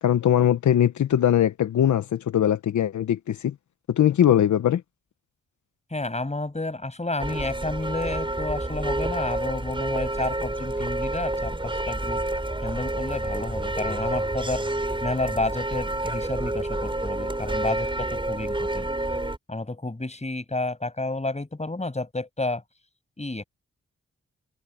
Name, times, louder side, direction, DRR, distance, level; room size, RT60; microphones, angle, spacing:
voice 1, 0.0-3.5 3.9-4.8, left 10 dB, 80° left, 1.0 m, -21 dB
voice 2, 5.9-12.2 12.6-14.6 15.0-18.9 19.5-22.6 23.2-23.4, left 2 dB, 25° left, 7.0 m, -30 dB
sound 1, 7.2-19.4, right 1 dB, 15° right, 6.5 m, -29 dB
cardioid pair, 55°, 29 cm